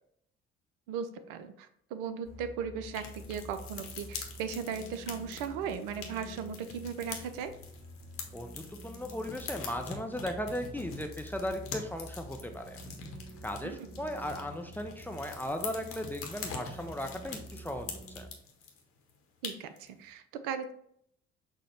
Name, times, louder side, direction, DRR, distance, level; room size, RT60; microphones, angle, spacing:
voice 1, 0.9-7.5 13.6-14.1 19.4-20.7, right 7 dB, 60° right, 10 dB, 0.4 m, -37 dB
sound 1, 2.2-18.2, right 1 dB, 40° right, 1.0 m, -49 dB
sound 2, 2.9-18.8 19.1-19.2 19.4-19.9, left 5 dB, 45° left, 0.8 m, -45 dB
voice 2, 8.3-12.8 13.4-18.3, left 1 dB, 5° left, 5 dB, 0.4 m, -37 dB
6.0 x 2.1 x 2.9 m, 0.70 s
figure-of-eight pair, 50°, 30 cm